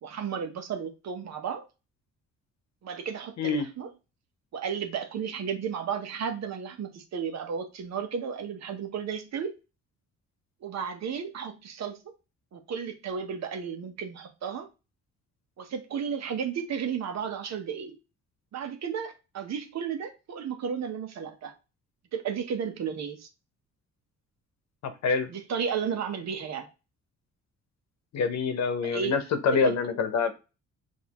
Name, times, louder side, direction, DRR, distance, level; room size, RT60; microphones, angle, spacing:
voice 1, 0.0-1.7 2.8-3.9 4.5-9.5 10.6-12.0 12.5-14.7 15.6-18.0 18.5-21.5 22.1-23.3 25.3-26.7 28.8-29.2 29.5-29.7, right 7 dB, 60° right, 1.0 m, -33 dB
voice 2, 24.8-25.3 28.1-30.3, left 5 dB, 65° left, 0.9 m, -26 dB
5.3 x 2.7 x 3.0 m
cardioid pair, 90°, 30 cm